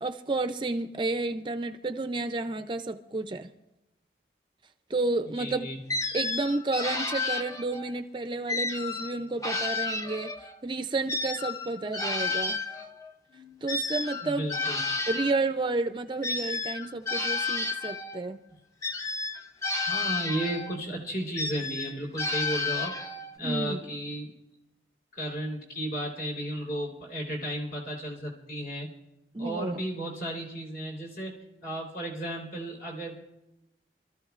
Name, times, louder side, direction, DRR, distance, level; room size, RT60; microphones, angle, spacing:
voice 1, 0.0-3.5 4.9-5.7 6.1-10.3 10.6-12.6 13.6-14.5 15.1-18.4 23.4-23.8 29.3-29.8, right 2 dB, 25° right, 8 dB, 0.5 m, -31 dB
voice 2, 5.3-5.8 14.2-14.8 19.9-22.9 23.4-24.3 25.1-28.9 29.4-33.2, right 1 dB, 50° left, -1 dB, 3.7 m, -34 dB
sound 1, 5.9-7.9 8.5-10.6 11.1-15.4 16.2-18.2 18.8-20.8 21.4-23.3, left 3 dB, 20° left, 0.7 m, -31 dB
26.5 x 14.0 x 2.5 m, 0.94 s
head